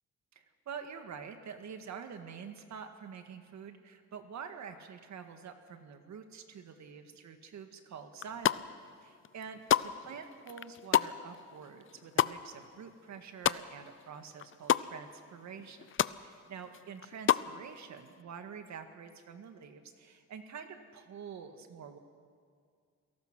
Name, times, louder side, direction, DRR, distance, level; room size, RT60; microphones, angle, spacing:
voice 1, 0.3-8.7 9.0-15.9 16.2-22.0, right 6 dB, 70° right, 7 dB, 1.9 m, -47 dB
sound 1, 8.1-8.9 9.2-14.0 14.3-14.9 15.3-15.4 15.6-16.2 16.6-17.5, left 10 dB, 45° left, 0.5 m, -30 dB
28.0 x 18.0 x 6.1 m, 2.1 s
cardioid pair, 115°, 29 cm